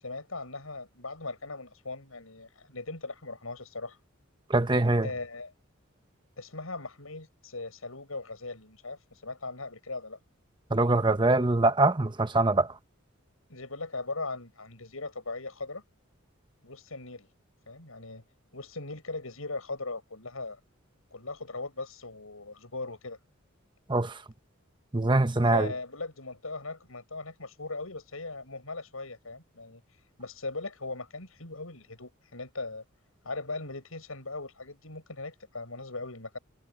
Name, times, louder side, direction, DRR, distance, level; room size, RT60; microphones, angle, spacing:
voice 1, 0.0-4.0 5.0-5.5 6.4-10.2 13.5-15.8 16.6-17.3 17.7-18.2 18.5-20.6 21.1-23.2 25.4-29.8 30.2-32.8 33.2-36.4, left 3 dB, 90° left, 7.3 m, -39 dB
voice 2, 4.5-5.1 10.7-12.7 23.9-24.1 24.9-25.7, right 2 dB, 20° right, 1.0 m, -23 dB
head